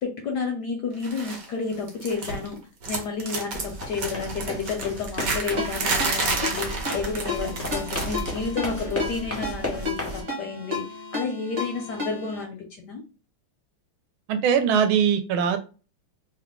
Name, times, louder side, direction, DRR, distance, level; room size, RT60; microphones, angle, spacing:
voice 1, 0.0-2.6 2.9-10.8 11.1-13.0, left 5 dB, 75° left, 2 dB, 1.0 m, -31 dB
sound 1, 1.0-1.5 1.7-2.5 2.8-8.4 8.6-8.9 10.0-10.1, right 3 dB, 55° right, 1.0 m, -30 dB
sound 2, 3.5-10.2, equal, 20° left, 0.4 m, -34 dB
Ringtone, 5.6-12.4, left 3 dB, 40° right, 1.3 m, -33 dB
voice 2, 14.3-15.6, right 7 dB, 80° right, 8 dB, 1.3 m, -21 dB
3.3 x 2.3 x 3.6 m, 0.34 s
omnidirectional pair, 2.3 m